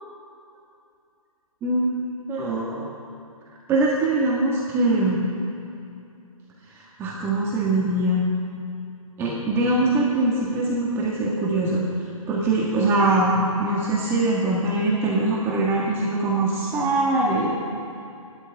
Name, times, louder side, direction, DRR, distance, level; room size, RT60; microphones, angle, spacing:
voice 1, 1.6-2.9 3.7-5.2 7.0-8.3 9.2-11.8 12.3-17.5, right 2 dB, 15° right, -4 dB, 1.5 m, -22 dB
29.0 x 12.0 x 3.5 m, 2.6 s
hypercardioid pair, 155°, 18 cm